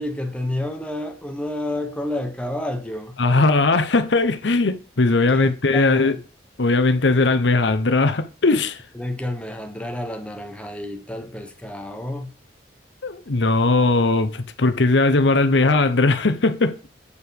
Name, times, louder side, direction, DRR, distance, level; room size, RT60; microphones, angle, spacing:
voice 1, 0.0-3.2 5.3-6.2 8.9-12.3, left 1 dB, 5° left, 1.0 m, -30 dB
voice 2, 3.2-6.1 6.6-8.8 13.0-16.8, left 3 dB, 80° left, 0.8 m, -19 dB
8.3 x 4.8 x 5.2 m
head